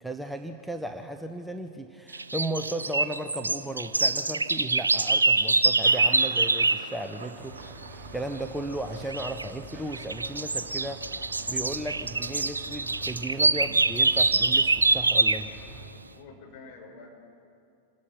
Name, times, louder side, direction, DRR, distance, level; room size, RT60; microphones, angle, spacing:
voice 1, 0.0-7.7 8.1-11.0 11.5-15.5, right 1 dB, ahead, 6 dB, 1.0 m, -35 dB
sound 1, 2.1-6.9 9.1-9.5 9.9-15.5, right 3 dB, 80° right, 0.5 m, -24 dB
Thunder, 3.9-16.2, right 5 dB, 60° right, 1.9 m, -50 dB
sound 2, 7.3-15.9, right 1 dB, 20° right, 4.7 m, -46 dB
voice 2, 15.9-17.1, left 4 dB, 45° left, 0 dB, 5.6 m, -48 dB
27.5 x 19.5 x 5.9 m, 2.5 s
figure-of-eight pair, 90°, 0 cm